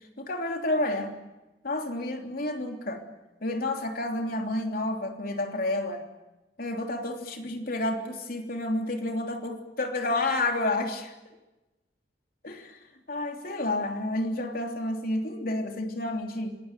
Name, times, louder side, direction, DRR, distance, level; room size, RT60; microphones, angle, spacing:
voice 1, 0.2-1.2 1.6-3.0 3.4-6.0 6.6-11.1 12.4-12.8 13.1-16.6, left 2 dB, 55° left, 3 dB, 3.3 m, -30 dB
25.5 x 20.0 x 9.2 m, 1.0 s
head